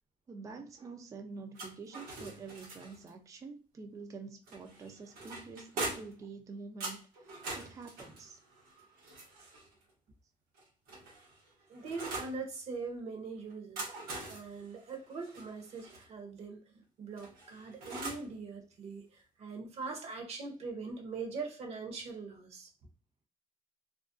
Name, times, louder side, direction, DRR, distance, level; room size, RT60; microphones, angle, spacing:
voice 1, 0.3-8.4, right 4 dB, 25° right, 0.3 m, -47 dB
sound 1, 1.5-3.1 4.5-6.2 6.8-9.7 10.5-12.4 13.5-16.0 17.2-18.3, right 2 dB, 90° right, 1.0 m, -43 dB
voice 2, 11.7-13.9 14.3-22.7, right 4 dB, 45° right, 0.7 m, -42 dB
2.4 x 2.1 x 2.4 m
cardioid pair, 130°, 14 cm